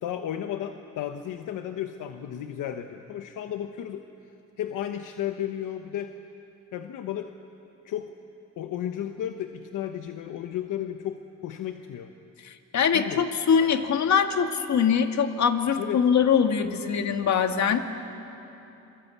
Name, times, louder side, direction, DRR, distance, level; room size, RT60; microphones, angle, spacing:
voice 1, 0.0-4.0 4.6-6.1 6.7-7.3 7.8-8.1 8.6-12.1 12.9-13.2 15.8-16.0, left 10 dB, 80° left, 6 dB, 1.1 m, -33 dB
voice 2, 12.4-17.8, left 7 dB, 60° left, 6 dB, 1.9 m, -23 dB
27.0 x 24.0 x 8.4 m, 2.9 s
cardioid pair, 100°, 31 cm